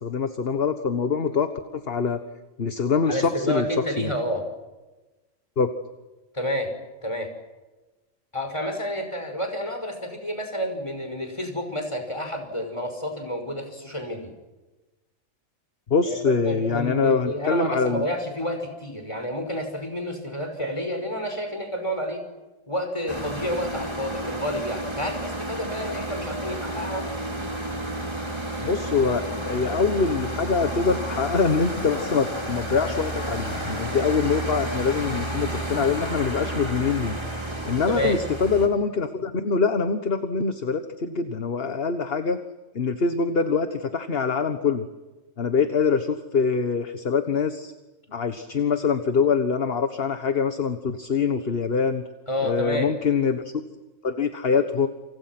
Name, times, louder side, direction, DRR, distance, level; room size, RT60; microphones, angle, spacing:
voice 1, 0.0-2.2 2.6-3.7 4.0-4.1 5.6-5.7 15.9-18.1 28.6-37.2 37.6-42.4 42.7-44.9 45.4-47.7 48.1-52.0 52.4-53.4 54.0-54.9, left 5 dB, 45° left, 9 dB, 1.6 m, -24 dB
voice 2, 3.1-4.5 6.3-6.7 7.0-7.3 8.3-14.3 16.1-22.2 22.7-27.1 37.9-38.2 51.4-51.5 52.3-52.9, equal, 20° left, 5 dB, 5.7 m, -29 dB
sound 1, 23.1-38.7, right 1 dB, 20° right, 3.9 m, -31 dB
29.0 x 27.5 x 6.1 m, 1.1 s
omnidirectional pair, 1.4 m